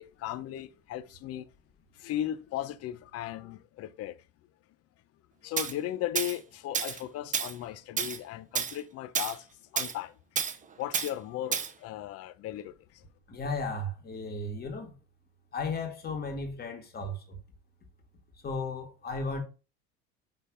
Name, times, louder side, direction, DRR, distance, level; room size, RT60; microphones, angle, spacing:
voice 1, 0.0-1.5 1.9-4.2 5.4-9.5 9.7-10.1 10.8-13.0, left 13 dB, 55° left, 0.7 m, -36 dB
Tools, 5.6-5.7 6.2-6.4 6.7-7.0 7.3-7.5 8.0-8.2 8.5-8.8 9.1-9.4 9.8-9.9 10.4-10.6 10.9-11.1 11.5-11.7, right 7 dB, 25° right, 0.7 m, -30 dB
voice 2, 13.3-14.9 15.5-17.4 18.4-19.4, left 3 dB, 35° left, 2.0 m, -35 dB
5.7 x 3.7 x 5.0 m
supercardioid pair, 110°, 29 cm